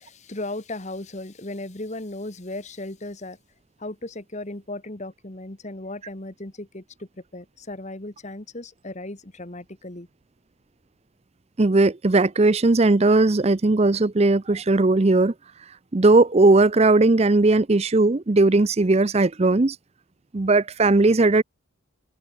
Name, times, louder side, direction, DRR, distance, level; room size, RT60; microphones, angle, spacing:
voice 1, 0.0-3.4 3.8-10.1, left 2 dB, 35° left, 1.5 m, -36 dB
voice 2, 11.6-15.3 15.9-19.8 20.3-21.4, right 2 dB, 30° right, 0.5 m, -18 dB
head